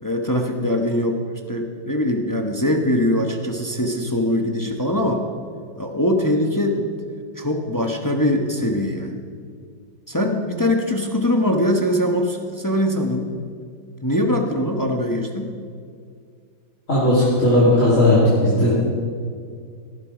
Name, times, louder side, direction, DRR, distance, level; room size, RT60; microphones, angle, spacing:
voice 1, 0.0-5.2 5.8-9.2 10.1-13.3 14.0-15.5, left 1 dB, 15° left, 3 dB, 0.7 m, -22 dB
voice 2, 16.9-18.7, left 1 dB, 40° left, -8 dB, 3.3 m, -16 dB
18.0 x 11.5 x 5.1 m, 2.2 s
omnidirectional pair, 2.1 m